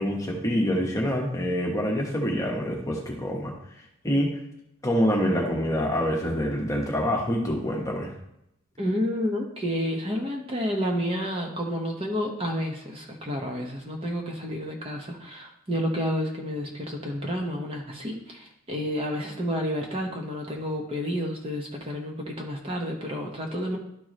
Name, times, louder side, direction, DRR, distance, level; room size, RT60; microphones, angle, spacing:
voice 1, 0.0-3.5 4.0-4.4 4.8-8.1, equal, 15° left, -1 dB, 1.1 m, -26 dB
voice 2, 8.8-23.8, equal, 25° right, 0 dB, 1.0 m, -30 dB
11.5 x 4.6 x 3.1 m, 0.80 s
head